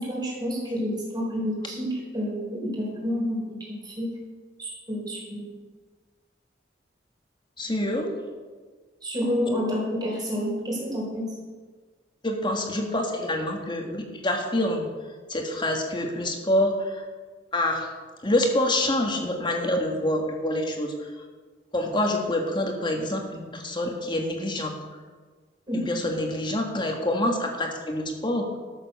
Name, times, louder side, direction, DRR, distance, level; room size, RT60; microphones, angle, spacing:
voice 1, 0.0-4.1 4.6-5.5 9.0-11.3 25.7-25.9, equal, 25° right, -4 dB, 4.4 m, -29 dB
voice 2, 7.6-8.1 12.2-14.9 15.3-17.0 17.5-17.9 18.2-21.1 21.7-24.7 25.9-28.5, left 1 dB, 25° left, 2 dB, 1.6 m, -26 dB
13.0 x 7.3 x 6.6 m, 1.4 s
head